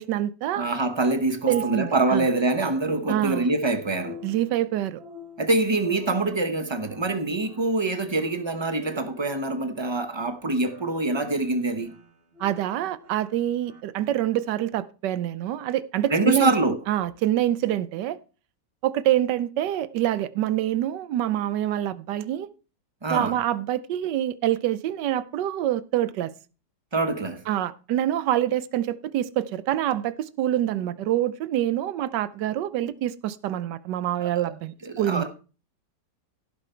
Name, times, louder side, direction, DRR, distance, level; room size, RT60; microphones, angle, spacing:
voice 1, 0.0-0.7 1.5-2.3 3.1-3.5 4.2-5.0 12.4-16.5 16.9-18.2 18.8-22.5 23.1-26.3 27.5-35.2, right 12 dB, 85° right, 1.3 m, -26 dB
voice 2, 0.6-4.2 5.4-11.9 16.1-16.8 23.0-23.4 26.9-27.4 34.2-34.5 34.8-35.3, right 2 dB, 20° right, 0.7 m, -25 dB
sound 1, 1.4-13.8, right 2 dB, 40° right, 1.4 m, -46 dB
16.0 x 5.7 x 4.4 m
omnidirectional pair, 1.8 m